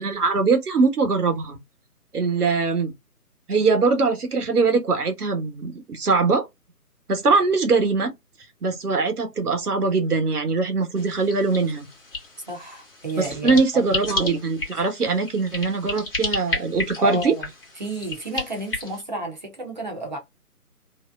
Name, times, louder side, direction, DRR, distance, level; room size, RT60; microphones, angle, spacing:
voice 1, 0.0-1.6 2.1-2.9 3.5-6.4 7.1-8.1 8.6-11.9 13.2-17.3, right 4 dB, 75° right, 1.1 m, -22 dB
sound 1, 11.0-19.0, left 3 dB, 35° left, 1.0 m, -33 dB
voice 2, 12.5-13.8 17.0-17.5 17.8-20.2, right 1 dB, 30° right, 0.8 m, -31 dB
2.7 x 2.0 x 2.2 m
figure-of-eight pair, 155°, 46 cm